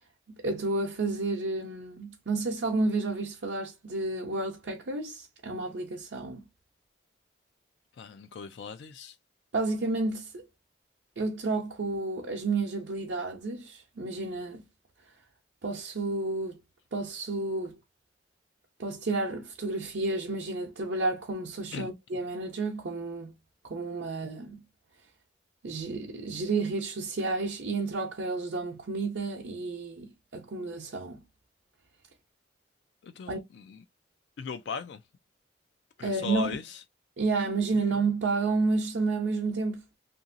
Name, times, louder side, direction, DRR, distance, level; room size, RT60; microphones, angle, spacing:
voice 1, 0.4-6.4 9.5-10.4 11.2-14.6 15.6-16.6 16.9-17.8 18.8-23.3 23.7-24.6 25.6-31.2 33.3-33.4 36.0-36.5 37.2-39.8, right 3 dB, 80° right, 0.7 m, -31 dB
voice 2, 8.0-9.1 21.7-21.9 33.0-33.8 34.4-35.0 36.0-36.7, left 6 dB, 70° left, 0.3 m, -38 dB
2.8 x 2.6 x 2.5 m
head